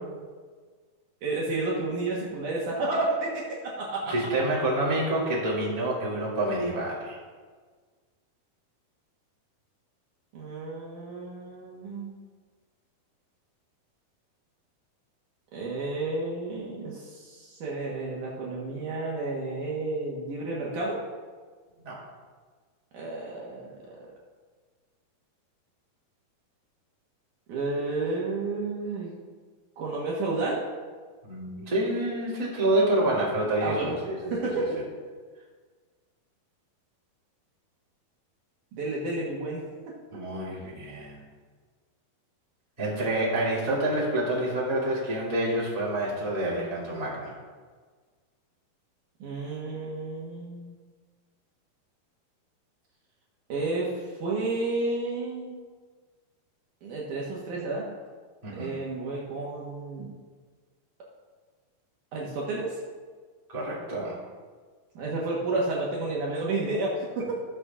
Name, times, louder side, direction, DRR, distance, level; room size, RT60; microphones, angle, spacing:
voice 1, 1.2-3.3 3.6-4.1 10.3-12.2 15.5-21.0 22.9-23.7 27.5-29.1 29.8-30.6 33.6-34.0 34.3-34.8 38.7-39.6 49.2-50.8 53.5-55.6 56.8-57.9 58.5-60.1 62.1-62.8 65.0-67.3, right 2 dB, 65° right, -4 dB, 2.4 m, -31 dB
voice 2, 4.1-7.2 21.8-22.0 31.2-34.2 40.1-41.2 42.8-47.3 58.4-58.7 63.5-64.2, right 1 dB, 15° right, -6 dB, 1.9 m, -27 dB
19.0 x 6.9 x 2.5 m, 1.5 s
omnidirectional pair, 4.3 m